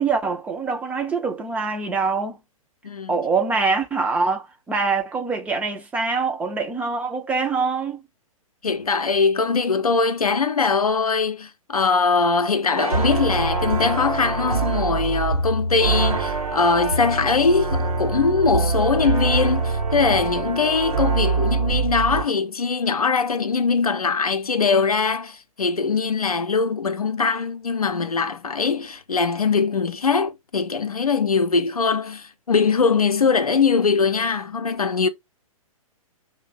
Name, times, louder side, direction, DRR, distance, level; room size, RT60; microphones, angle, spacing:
voice 1, 0.0-2.4 3.1-8.0, right 4 dB, 10° right, 0.3 m, -24 dB
voice 2, 8.6-35.1, left 4 dB, 85° left, 0.5 m, -21 dB
sound 1, 12.8-22.2, right 3 dB, 80° right, 0.9 m, -24 dB
2.5 x 2.1 x 3.7 m
figure-of-eight pair, 115°, 18 cm